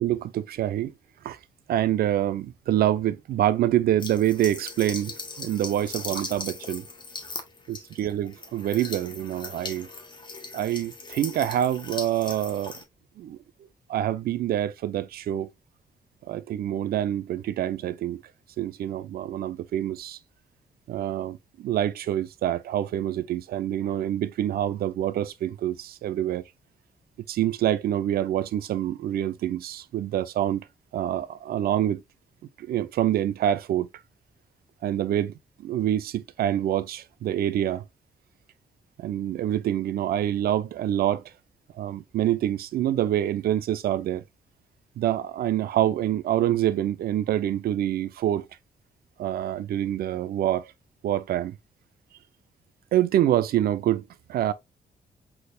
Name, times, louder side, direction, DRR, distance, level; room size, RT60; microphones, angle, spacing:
voice 1, 0.0-0.9 1.2-1.4 1.7-6.8 7.7-9.9 10.5-12.8 13.2-13.4 13.9-15.5 16.3-18.2 18.6-20.2 20.9-26.4 27.3-30.7 30.9-32.0 32.6-33.9 34.8-35.3 35.6-37.8 39.0-41.2 41.8-44.2 45.0-48.5 49.2-50.7 51.0-51.6 52.9-54.5, right 12 dB, 85° right, 0.6 m, -26 dB
sound 1, 4.0-12.8, left 3 dB, 30° left, 0.9 m, -39 dB
6.0 x 3.4 x 2.2 m
wide cardioid pair, 155°, 15 cm